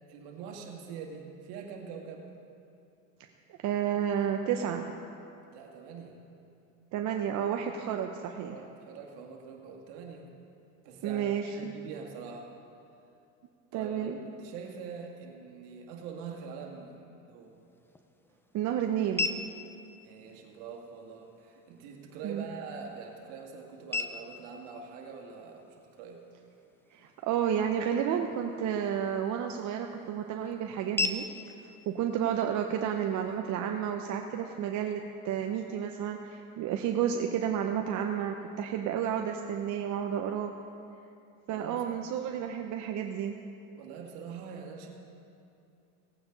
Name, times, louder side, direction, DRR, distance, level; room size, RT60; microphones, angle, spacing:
voice 1, 0.0-2.3 5.5-6.2 8.4-10.3 10.8-12.5 13.7-17.6 20.0-26.2 41.5-41.8 43.8-44.9, right 6 dB, 60° right, 1 dB, 2.2 m, -44 dB
voice 2, 3.6-5.0 6.9-8.6 11.0-11.7 13.7-14.2 18.5-19.3 22.2-22.5 26.9-31.3 31.9-40.5 41.5-43.4, right 9 dB, 45° right, 4 dB, 0.8 m, -31 dB
sound 1, 17.4-33.4, left 3 dB, 5° left, 0.5 m, -41 dB
18.0 x 8.7 x 3.9 m, 2.6 s
hypercardioid pair, 100°, 42 cm